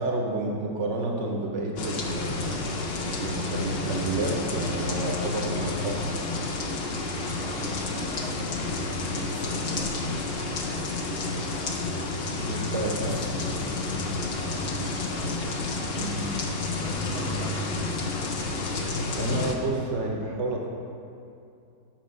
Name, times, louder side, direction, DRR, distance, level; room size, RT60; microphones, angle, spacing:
voice 1, 0.0-2.7 3.2-6.4 12.2-13.2 15.9-16.2 19.1-20.7, right 2 dB, 55° right, 0 dB, 0.9 m, -30 dB
sound 1, 1.8-19.5, left 3 dB, 60° left, 0.6 m, -30 dB
voice 2, 7.4-12.0 12.7-15.6 16.7-18.5, left 2 dB, 15° left, -5 dB, 0.3 m, -42 dB
7.7 x 5.3 x 5.1 m, 2.5 s
omnidirectional pair, 1.8 m